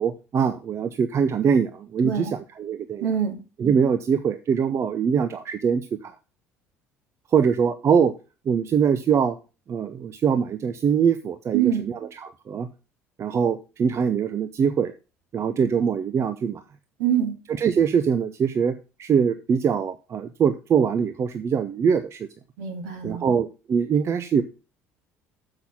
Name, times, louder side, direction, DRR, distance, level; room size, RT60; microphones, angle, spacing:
voice 1, 0.0-3.1 3.6-6.1 7.3-8.1 8.5-9.4 9.7-12.7 13.2-14.9 15.3-16.6 17.6-22.3 23.0-24.4, right 7 dB, 40° right, 11 dB, 0.7 m, -23 dB
voice 2, 3.0-3.4 11.5-11.8 17.0-17.3 22.6-23.2, right 9 dB, 65° right, 2 dB, 2.2 m, -24 dB
7.1 x 5.8 x 5.6 m, 0.31 s
figure-of-eight pair, 60°, 7 cm